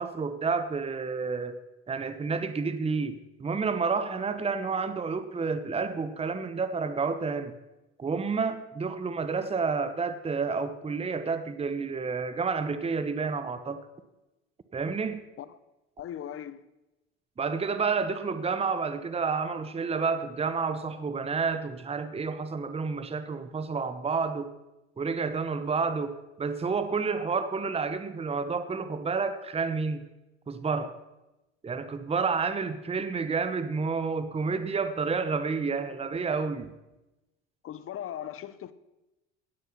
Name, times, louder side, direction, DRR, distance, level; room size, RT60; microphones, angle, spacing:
voice 1, 0.0-1.6 1.9-7.5 8.0-13.8 14.7-15.2 17.4-24.5 25.0-26.1 26.4-30.0 30.5-31.0 31.6-36.7, right 4 dB, 15° right, 1.1 m, -30 dB
voice 2, 16.0-16.6 37.6-38.7, left 10 dB, 40° left, 1.0 m, -38 dB
16.0 x 9.5 x 5.7 m
hypercardioid pair, 80°, 34 cm